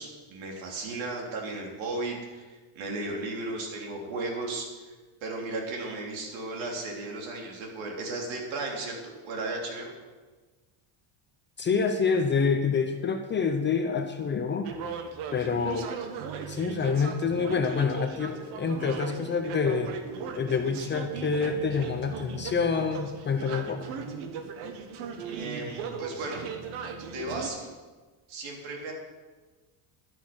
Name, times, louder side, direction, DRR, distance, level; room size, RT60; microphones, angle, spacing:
voice 1, 0.0-4.7 5.2-9.9 25.2-26.4 27.0-27.7 28.3-28.9, right 2 dB, 65° right, 0 dB, 3.8 m, -35 dB
voice 2, 11.6-14.7 15.3-15.9 16.5-19.9 20.3-23.9, left 5 dB, 20° left, 6 dB, 0.7 m, -27 dB
sound 1, 14.6-27.5, right 6 dB, 85° right, 1.8 m, -38 dB
13.0 x 12.0 x 6.3 m, 1.3 s
cardioid pair, 175°, 50 cm